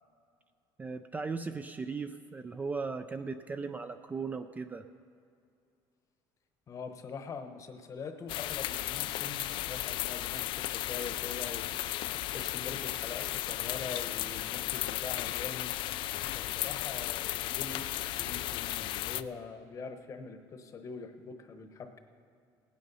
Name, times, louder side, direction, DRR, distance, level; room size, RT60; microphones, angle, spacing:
voice 1, 0.8-4.8, right 4 dB, 15° right, 9 dB, 0.3 m, -37 dB
voice 2, 6.7-15.7 16.3-22.0, left 5 dB, 35° left, 7 dB, 1.0 m, -43 dB
sound 1, 8.3-19.2, left 15 dB, 65° left, 0.4 m, -35 dB
17.5 x 9.4 x 5.5 m, 2.4 s
cardioid pair, 145°, 9 cm